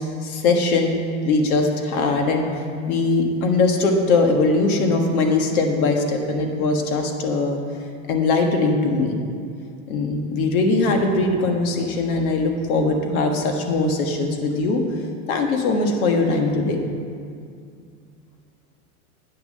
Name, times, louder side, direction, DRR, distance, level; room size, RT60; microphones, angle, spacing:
voice 1, 0.2-7.6 8.1-9.2 9.9-14.8 15.3-16.8, left 3 dB, 80° left, 3 dB, 1.5 m, -21 dB
8.9 x 6.3 x 6.6 m, 2.3 s
supercardioid pair, 165°, 43 cm